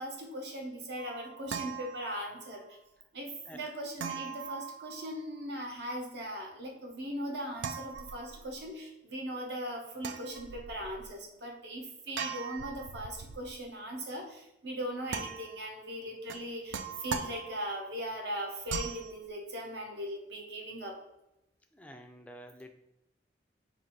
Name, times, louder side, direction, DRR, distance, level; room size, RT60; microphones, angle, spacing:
voice 1, 0.0-2.8 3.1-21.0, equal, 65° right, 1 dB, 0.9 m, -39 dB
sound 1, 1.0-2.6 4.0-5.4 7.6-8.6 10.0-11.1 12.1-13.6 15.1-15.7 16.3-17.9 18.7-19.1, right 6 dB, 90° right, 0.3 m, -40 dB
voice 2, 21.7-22.7, equal, 10° left, 4 dB, 0.3 m, -49 dB
4.0 x 2.5 x 4.5 m, 0.88 s
head